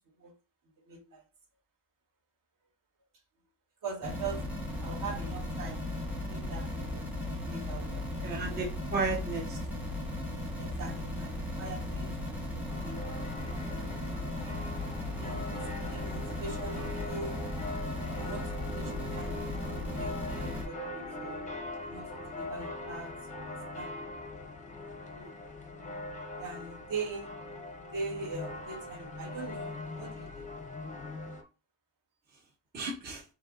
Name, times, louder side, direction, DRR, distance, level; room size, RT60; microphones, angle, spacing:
voice 1, 0.8-1.2 3.8-4.4 4.8-5.8 6.3-7.0 7.4-8.0 10.6-13.1 13.7-14.2 15.1-17.4 18.1-21.4 21.9-23.9 26.3-27.3 27.9-30.5, right 4 dB, 45° right, 1.2 m, -42 dB
sound 1, 4.0-20.7, left 1 dB, 5° right, 1.1 m, -36 dB
voice 2, 8.2-9.6 25.2-25.3 32.7-33.2, right 4 dB, 20° right, 0.6 m, -34 dB
sound 2, 12.7-31.4, left 2 dB, 15° left, 0.6 m, -41 dB
4.1 x 2.9 x 3.7 m
cardioid pair, 170°, 46 cm